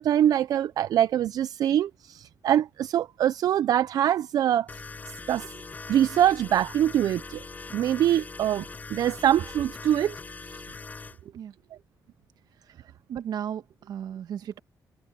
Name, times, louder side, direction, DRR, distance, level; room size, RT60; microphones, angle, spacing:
voice 1, 0.0-4.7 5.3-5.5 5.9-7.4 7.7-8.6 8.9-10.1 10.5-10.6, right 11 dB, 70° right, 0.4 m, -24 dB
sound 1, 4.7-11.2, left 4 dB, 25° left, 7.9 m, -41 dB
voice 2, 11.2-11.5 12.7-12.8 13.1-14.6, right 9 dB, 90° right, 1.6 m, -35 dB
wide cardioid pair, 175°, 7 cm